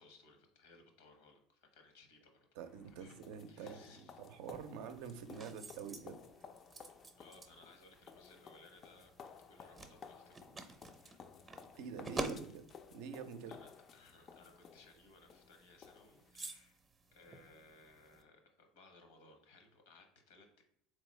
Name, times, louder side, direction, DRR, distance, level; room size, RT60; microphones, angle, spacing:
voice 1, 0.0-2.5 2.9-3.2 3.5-4.2 7.2-10.4 13.5-16.8 17.1-20.6, left 3 dB, 75° left, 5 dB, 0.8 m, -62 dB
sound 1, 2.6-16.3, left 6 dB, 45° left, 0.3 m, -57 dB
voice 2, 2.6-6.2 11.7-13.5, right 6 dB, 70° right, 8 dB, 0.4 m, -47 dB
sound 2, 4.5-18.2, right 3 dB, 25° right, 0.6 m, -50 dB
3.7 x 3.1 x 3.1 m, 0.72 s
hypercardioid pair, 80°, 0 cm